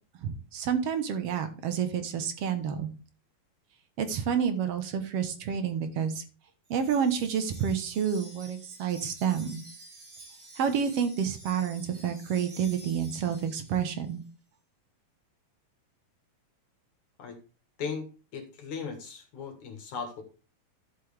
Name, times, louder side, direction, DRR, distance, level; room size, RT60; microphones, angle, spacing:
voice 1, 0.2-2.9 4.0-6.2 6.7-9.6 10.6-14.2, right 7 dB, 60° right, 8 dB, 1.6 m, -29 dB
Wind chime, 6.7-14.2, right 2 dB, 45° right, 3.0 m, -50 dB
voice 2, 17.8-20.2, left 5 dB, 60° left, 4 dB, 2.9 m, -37 dB
11.5 x 7.7 x 3.4 m, 0.36 s
omnidirectional pair, 4.0 m